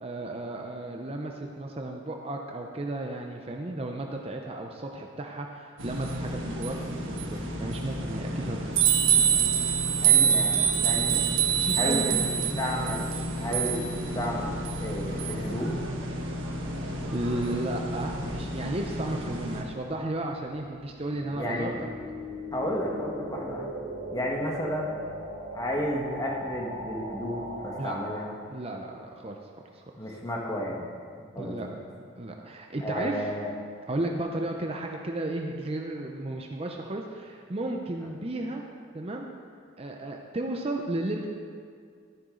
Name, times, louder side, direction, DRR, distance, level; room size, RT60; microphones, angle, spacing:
voice 1, 0.0-8.8 9.6-9.7 11.6-12.2 12.5-12.6 17.1-21.7 27.8-28.0 28.5-29.4 29.7-30.2 31.4-31.7 32.2-33.3 33.9-38.6 38.9-39.3 39.8-41.3, right 1 dB, 30° right, 2 dB, 0.6 m, -34 dB
sound 1, 5.8-19.6, right 6 dB, 75° right, 1.5 m, -27 dB
voice 2, 10.0-11.3 11.8-12.1 12.6-15.8 21.3-21.8 22.5-23.7 24.1-24.9 25.5-28.3 30.0-30.8 31.3-31.6 32.8-33.5, equal, 20° left, -2 dB, 1.5 m, -32 dB
sound 2, 20.4-28.3, equal, 45° right, 1.6 m, -39 dB
13.0 x 10.0 x 3.8 m, 2.1 s
head